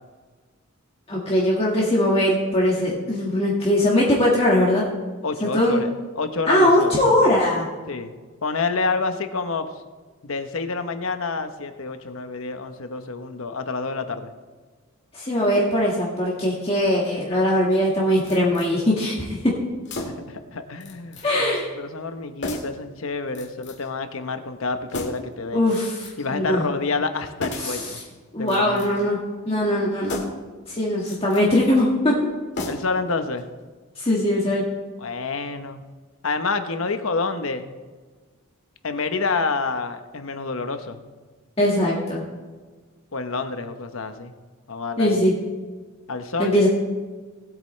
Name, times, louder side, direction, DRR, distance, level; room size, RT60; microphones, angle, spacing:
voice 1, 1.1-4.8 5.5-5.8 6.5-7.7 15.1-19.4 21.2-21.7 25.5-26.6 27.6-27.9 28.3-29.2 29.4-30.2 30.7-32.2 34.0-34.6 41.6-42.2 45.0-45.3 46.4-46.7, left 1 dB, 25° left, -4 dB, 1.7 m, -20 dB
voice 2, 5.2-5.9 6.1-7.0 7.9-8.1 8.4-9.7 10.2-14.3 20.0-25.7 26.2-28.0 28.4-29.0 32.7-33.5 35.0-35.8 36.2-37.7 38.8-41.0 43.1-44.3 44.7-45.2 46.1-46.6, left 4 dB, 70° left, 8 dB, 1.0 m, -28 dB
sound 1, 18.3-18.7 19.8-20.4 20.8-21.3 21.5-21.7 22.4-22.8 23.3-23.9 24.9-25.3 25.7-26.3 27.4-27.8 28.4-29.1 30.0-30.5 31.0-31.5 32.5-33.1 33.4-33.5, left 2 dB, 50° left, 2.0 m, -34 dB
19.0 x 8.6 x 3.3 m, 1.4 s
head